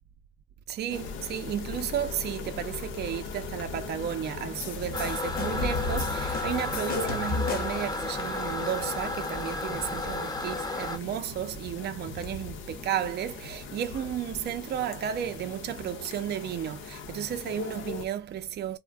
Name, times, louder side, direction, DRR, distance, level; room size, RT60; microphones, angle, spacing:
voice 1, 0.7-18.8, right 10 dB, 55° right, 0.5 m, -33 dB
sound 1, 0.9-18.1, left 4 dB, 85° left, 0.7 m, -38 dB
sound 2, 4.6-7.9, left 4 dB, 45° left, 1.0 m, -36 dB
Toilet flush, 4.9-11.0, left 2 dB, 20° left, 0.7 m, -33 dB
2.5 x 2.1 x 3.3 m
cardioid pair, 90°, 20 cm